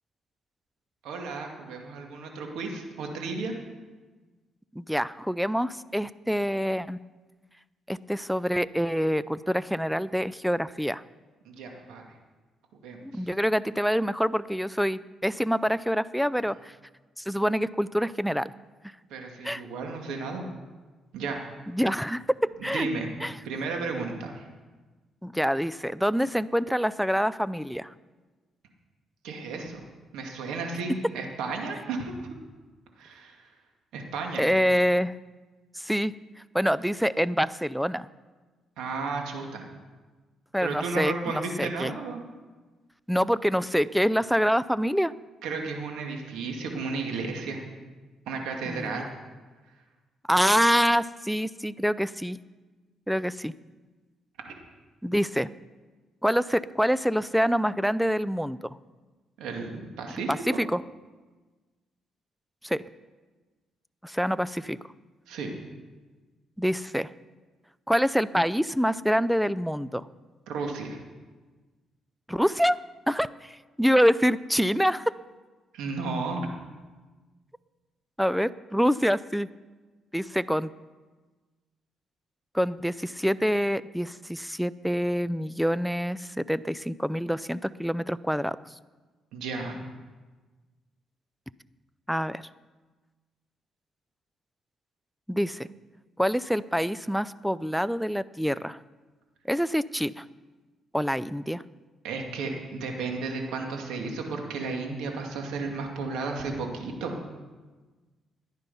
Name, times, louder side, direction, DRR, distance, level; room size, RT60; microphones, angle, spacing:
voice 1, 1.0-3.5 11.4-12.0 12.8-13.0 19.1-20.5 21.1-21.4 22.6-23.1 23.4-24.4 29.2-29.8 30.1-32.1 33.0-33.4 33.9-34.4 38.8-39.6 40.6-42.2 45.4-47.6 48.3-49.1 59.4-60.6 65.3-65.5 70.5-71.0 75.7-76.5 89.3-89.8 102.0-107.1, right 4 dB, 90° right, 2 dB, 2.2 m, -33 dB
voice 2, 4.7-7.0 7.9-11.0 13.0-16.8 17.2-18.5 19.4-19.6 21.7-22.9 23.2-23.4 25.2-27.9 34.4-35.1 35.7-36.1 36.5-38.1 40.5-41.9 43.1-45.1 48.7-49.1 50.3-52.4 53.1-53.5 55.0-55.5 56.2-58.8 60.3-60.8 62.6-62.8 64.0-64.8 66.6-67.1 67.9-70.1 72.3-72.8 73.1-75.1 78.2-79.5 80.1-80.7 82.5-88.6 92.1-92.4 95.3-95.7 96.2-98.8 99.5-100.2 100.9-101.6, equal, ahead, 17 dB, 0.4 m, -26 dB
14.0 x 10.5 x 5.5 m, 1.3 s
cardioid pair, 90°, 0 cm